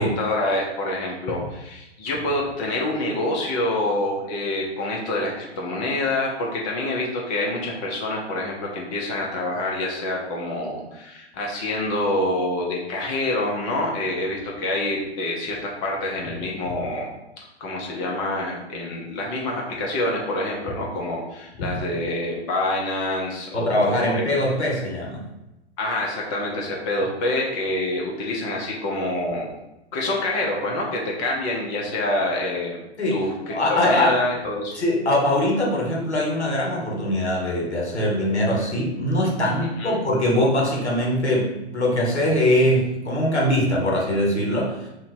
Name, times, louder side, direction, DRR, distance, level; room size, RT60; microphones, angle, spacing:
voice 1, 0.0-17.1 17.6-24.2 24.5-24.6 25.8-29.5 29.9-32.8 33.1-34.7 39.8-39.9, left 1 dB, 30° left, -2 dB, 0.8 m, -26 dB
voice 2, 23.5-25.2 33.0-33.2 33.5-34.1 34.7-44.9, left 1 dB, 85° left, -3 dB, 1.4 m, -22 dB
2.8 x 2.7 x 4.4 m, 0.92 s
figure-of-eight pair, 120°, 33 cm